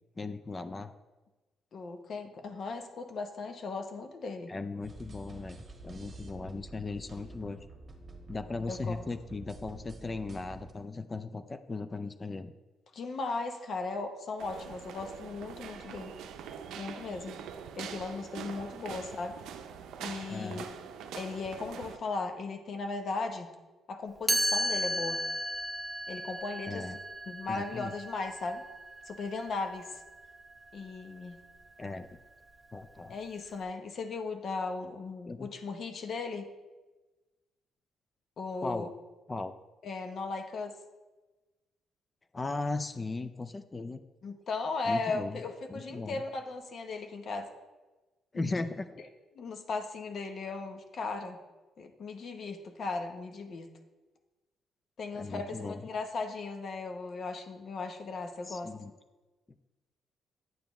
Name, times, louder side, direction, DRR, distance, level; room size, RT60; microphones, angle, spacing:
voice 1, 0.2-0.9 4.5-7.7 8.3-12.5 20.3-20.6 26.7-26.9 27.5-27.9 31.8-32.2 32.7-33.2 35.3-35.5 38.6-38.9 39.3-39.5 42.3-44.0 44.8-45.4 45.7-46.2 48.3-49.0 55.1-55.8 58.4-58.9, left 3 dB, 25° left, 10 dB, 0.4 m, -37 dB
voice 2, 1.7-4.5 8.7-9.0 12.9-16.1 16.8-17.4 17.8-19.4 20.0-20.7 21.1-23.5 23.9-25.2 26.1-27.0 27.3-28.6 29.0-30.0 30.7-31.4 33.1-36.5 38.4-38.9 39.8-40.8 44.2-47.5 48.3-48.6 49.3-51.4 51.8-53.7 55.0-58.7, left 3 dB, 55° left, 5 dB, 0.8 m, -37 dB
sound 1, 4.8-10.7, right 2 dB, 40° right, 1.2 m, -49 dB
sound 2, 14.4-22.0, right 7 dB, 85° right, 0.5 m, -44 dB
Chime, 24.3-30.1, equal, 5° right, 0.7 m, -34 dB
9.2 x 6.8 x 3.1 m, 1.2 s
cardioid pair, 90°, 0 cm